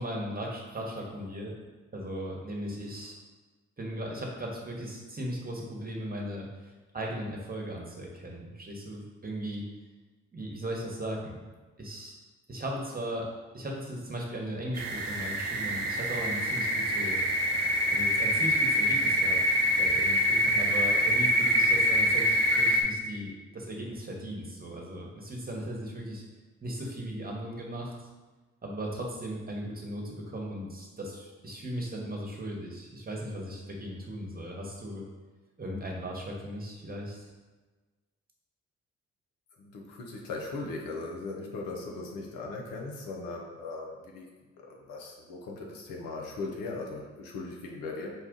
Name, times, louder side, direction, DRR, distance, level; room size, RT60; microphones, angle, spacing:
voice 1, 0.0-1.5 1.9-3.2 3.8-6.5 6.9-9.7 10.3-11.4 11.8-12.1 12.5-17.2 17.9-19.4 19.8-26.2 26.6-28.1 28.6-35.0 35.6-37.3, right 1 dB, 25° right, -1 dB, 1.1 m, -37 dB
sound 1, 14.7-22.8, equal, 85° right, 0.5 m, -25 dB
voice 2, 39.6-44.3 44.6-48.1, left 3 dB, 75° left, 0 dB, 0.7 m, -38 dB
4.3 x 2.4 x 3.8 m, 1.3 s
hypercardioid pair, 45°, 34 cm